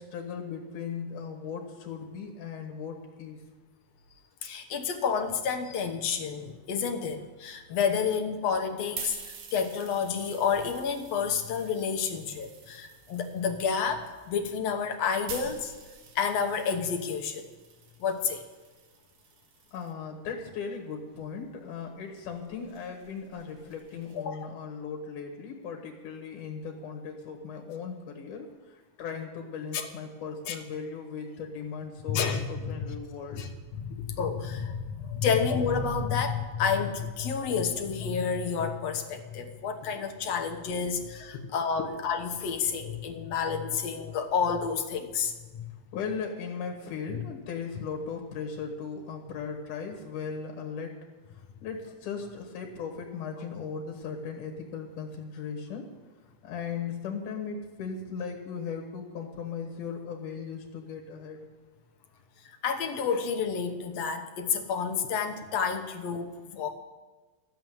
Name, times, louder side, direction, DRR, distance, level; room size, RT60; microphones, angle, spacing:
voice 1, 0.0-3.4 19.7-32.2 32.5-33.4 39.8-40.0 41.3-41.9 45.9-51.0 51.3-55.9 56.4-61.5, left 6 dB, 90° left, 2 dB, 2.9 m, -38 dB
voice 2, 4.4-15.7 16.2-17.5 18.0-18.4 24.2-24.4 29.7-29.9 30.5-30.6 32.1-32.6 33.3-45.6 62.5-66.7, left 6 dB, 65° left, 5 dB, 2.0 m, -30 dB
sound 1, 8.5-19.9 20.7-24.2, right 6 dB, 65° right, 2.4 m, -48 dB
13.5 x 7.6 x 9.2 m, 1.3 s
omnidirectional pair, 3.5 m